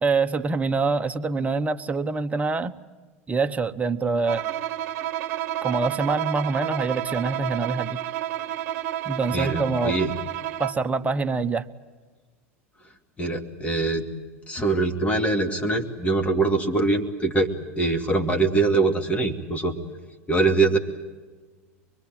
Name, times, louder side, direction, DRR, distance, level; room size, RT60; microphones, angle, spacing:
voice 1, 0.0-2.7 3.3-4.4 5.6-8.0 9.0-10.0 10.6-11.6, right 4 dB, 20° right, 8 dB, 1.1 m, -25 dB
Bowed string instrument, 4.3-10.9, right 12 dB, 65° right, 1.0 m, -30 dB
voice 2, 9.3-10.1 13.2-14.1 14.4-19.8 20.3-20.8, right 3 dB, 15° left, 4 dB, 2.7 m, -23 dB
24.0 x 22.0 x 9.4 m, 1.3 s
hypercardioid pair, 90°, 8 cm